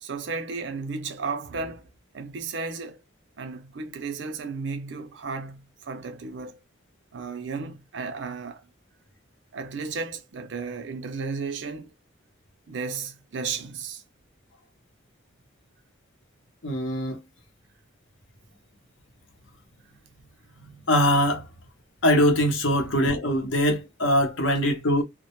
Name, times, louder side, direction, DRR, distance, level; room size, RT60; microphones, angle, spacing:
voice 1, 0.0-1.9 2.1-3.0 3.4-6.6 7.1-8.6 9.5-11.9 12.7-14.0 22.7-22.9, right 4 dB, 60° right, 0.5 m, -34 dB
voice 2, 16.6-17.2 20.9-21.4 22.0-25.0, equal, 70° left, 0.7 m, -22 dB
2.1 x 2.0 x 2.9 m
head